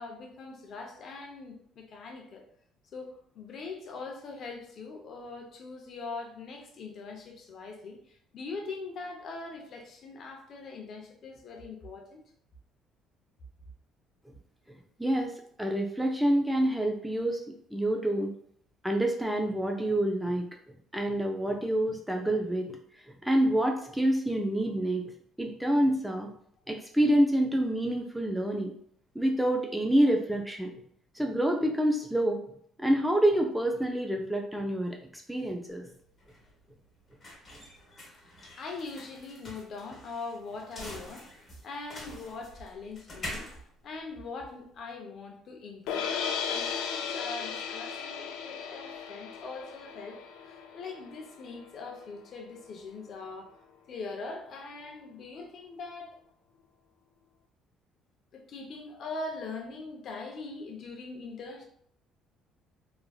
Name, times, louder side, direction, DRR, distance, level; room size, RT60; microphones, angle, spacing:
voice 1, 0.0-2.5 2.9-12.2 38.6-43.5 43.8-50.2 50.5-53.6 53.9-56.2 58.3-61.6, left 3 dB, 50° left, 2 dB, 0.6 m, -42 dB
voice 2, 15.0-15.3 15.6-18.3 18.8-20.5 20.9-22.8 23.2-25.1 25.4-26.3 26.7-28.7 29.2-30.7 31.2-32.4 32.8-35.9, right 1 dB, 5° right, 2 dB, 0.3 m, -27 dB
sound 1, 35.7-44.8, left 1 dB, 30° left, 1.1 m, -46 dB
sound 2, 45.9-52.0, left 7 dB, 85° left, 0.3 m, -36 dB
3.0 x 2.5 x 2.3 m, 0.66 s
cardioid pair, 120°, 0 cm